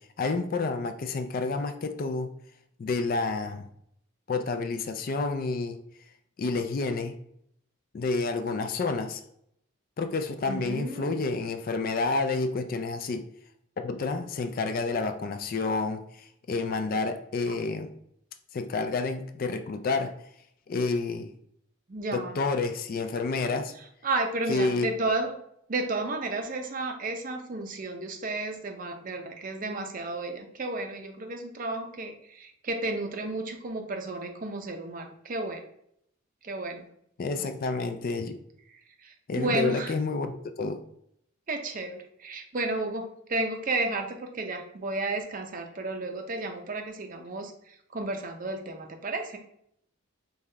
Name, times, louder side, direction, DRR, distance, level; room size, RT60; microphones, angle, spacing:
voice 1, 0.2-2.3 2.8-3.6 4.3-5.8 6.4-7.2 7.9-9.2 10.0-13.3 13.8-17.9 18.5-20.1 20.7-21.3 22.1-23.7 24.5-24.9 37.2-38.4 39.3-40.8, left 3 dB, 40° left, 8 dB, 0.3 m, -29 dB
voice 2, 10.5-11.3 21.9-22.4 24.0-25.3 25.7-35.6 36.4-36.9 39.0-39.9 41.5-49.4, right 2 dB, 40° right, 5 dB, 0.5 m, -32 dB
5.4 x 2.3 x 3.2 m, 0.71 s
head